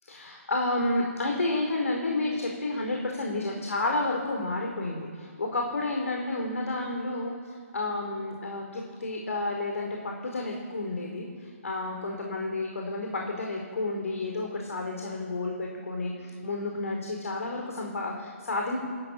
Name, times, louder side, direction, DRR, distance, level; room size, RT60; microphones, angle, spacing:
voice 1, 0.0-18.8, left 2 dB, 65° left, 1 dB, 4.7 m, -31 dB
28.5 x 14.5 x 7.4 m, 2.6 s
hypercardioid pair, 180°, 8 cm